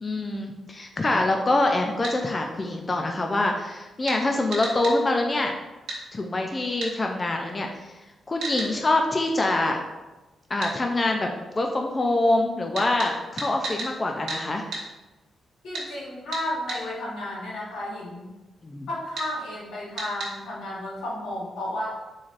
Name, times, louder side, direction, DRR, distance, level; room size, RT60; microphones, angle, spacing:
voice 1, 0.0-5.5 6.1-7.7 8.3-9.8 10.5-11.3 11.6-14.6 18.6-18.9, left 2 dB, 30° left, 2 dB, 0.4 m, -25 dB
sound 1, 2.0-2.2 4.1-4.2 4.5-5.0 5.9-6.0 6.8-6.9 8.4-8.7 10.6-10.7 12.7-13.9 14.3-14.4 14.7-14.8 15.7-15.9 16.3-16.8 19.2-19.3 20.0-20.3, right 2 dB, 85° right, 1.0 m, -32 dB
voice 2, 15.6-18.3 18.9-21.9, left 1 dB, 90° left, -5 dB, 1.1 m, -33 dB
3.9 x 3.2 x 2.5 m, 1.1 s
cardioid pair, 75°, 0 cm